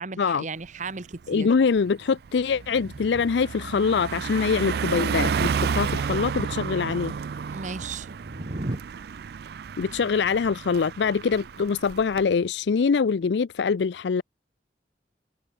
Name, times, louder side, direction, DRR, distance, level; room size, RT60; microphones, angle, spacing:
voice 1, 0.0-1.5 7.5-8.8, right 3 dB, 45° right, 1.2 m, -34 dB
Car passing by, 0.7-0.9 1.3-12.2, right 6 dB, 60° right, 0.4 m, -31 dB
voice 2, 1.3-7.1 9.8-14.2, left 5 dB, 75° left, 0.4 m, -24 dB
head